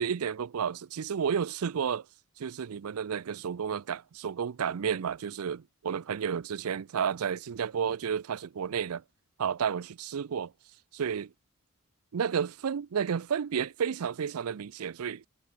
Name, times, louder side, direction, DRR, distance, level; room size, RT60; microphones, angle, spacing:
voice 1, 0.0-2.1 2.4-9.0 9.4-10.5 10.9-11.3 12.1-15.3, right 7 dB, 80° right, 0.5 m, -31 dB
head